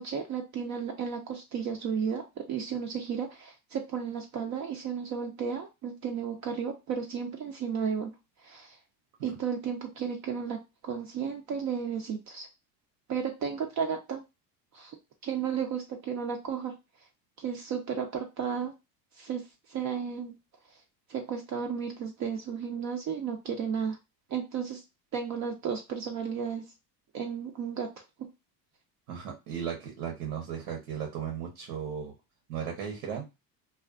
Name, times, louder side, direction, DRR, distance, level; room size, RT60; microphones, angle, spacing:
voice 1, 0.0-8.1 8.4-8.8 9.2-12.5 13.1-14.2 14.7-15.0 15.2-16.7 17.4-18.7 19.2-19.4 19.7-20.4 21.1-24.0 24.3-24.8 25.1-26.6 27.1-27.9, right 7 dB, 40° right, 3 dB, 0.5 m, -33 dB
voice 2, 29.1-32.1 32.5-33.3, right 8 dB, 90° right, 1 dB, 1.0 m, -36 dB
2.4 x 2.3 x 2.3 m, 0.24 s
supercardioid pair, 95°, 48 cm